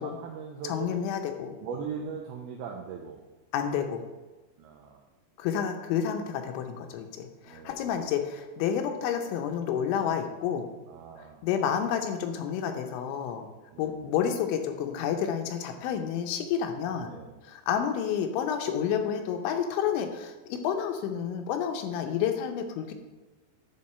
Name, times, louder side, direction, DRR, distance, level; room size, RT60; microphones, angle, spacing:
voice 1, 0.0-0.9 1.6-3.2 4.6-5.0 7.4-8.1 10.9-11.4 13.7-14.0 16.9-17.4, right 6 dB, 85° right, 1 dB, 2.2 m, -40 dB
voice 2, 0.6-1.6 3.5-4.0 5.4-10.7 11.4-13.5 13.8-17.1 17.5-22.9, left 8 dB, 85° left, 5 dB, 3.2 m, -30 dB
11.5 x 3.8 x 4.3 m, 1.2 s
omnidirectional pair, 5.3 m